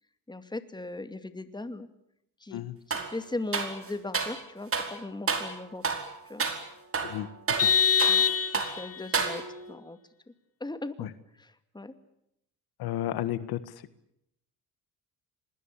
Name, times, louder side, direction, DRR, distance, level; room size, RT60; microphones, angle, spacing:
voice 1, 0.3-1.9 2.4-5.9 6.2-6.4 8.1-8.2 8.5-10.0 10.6-11.9, left 2 dB, 10° left, 9 dB, 2.4 m, -38 dB
sound 1, 2.9-3.1 3.5-4.4 4.7-4.9 5.3-5.5 5.8-6.1 6.4-6.6 6.9-8.3 8.5-8.8 9.1-9.7, right 5 dB, 35° right, 4.8 m, -30 dB
Vehicle horn car horn honking, 7.6-9.0, left 7 dB, 40° left, 1.7 m, -24 dB
voice 2, 12.8-13.7, left 12 dB, 85° left, 13 dB, 1.7 m, -32 dB
27.0 x 21.0 x 8.4 m, 0.78 s
cardioid pair, 100°, 37 cm